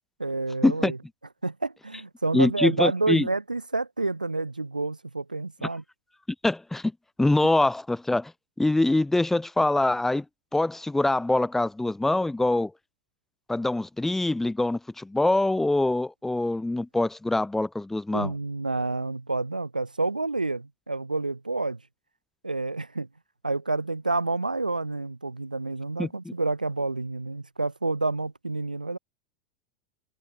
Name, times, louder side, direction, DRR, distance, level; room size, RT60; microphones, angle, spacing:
voice 1, 0.2-1.0 1.4-5.8 18.1-21.8 22.4-23.1 23.4-29.0, right 3 dB, 90° right, 6.8 m, -29 dB
voice 2, 2.3-3.3 6.4-6.9 7.2-8.3 8.6-10.2 10.5-12.7 13.5-18.3 26.0-26.1, left 2 dB, 5° left, 2.4 m, -24 dB
figure-of-eight pair, 85°, 4 cm